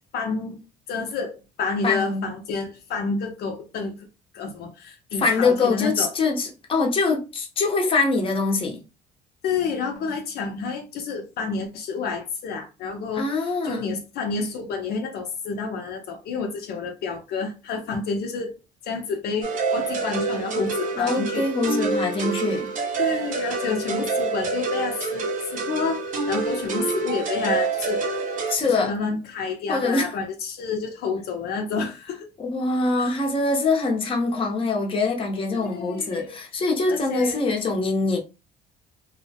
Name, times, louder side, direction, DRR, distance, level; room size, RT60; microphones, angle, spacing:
voice 1, 0.1-0.6 0.9-4.1 4.3-6.1 9.4-13.3 13.6-18.5 18.8-21.5 23.0-28.1 28.6-32.3 33.0-33.2 35.5-36.3 36.9-37.4, left 4 dB, 70° left, 0.6 m, -29 dB
voice 2, 1.8-2.2 5.2-8.8 13.2-13.9 21.0-22.7 28.5-28.9 29.7-30.1 32.4-38.2, left 3 dB, 30° left, 0.8 m, -23 dB
sound 1, 19.4-28.6, right 4 dB, 50° right, 0.6 m, -27 dB
2.7 x 2.1 x 2.7 m
cardioid pair, 110°, 17 cm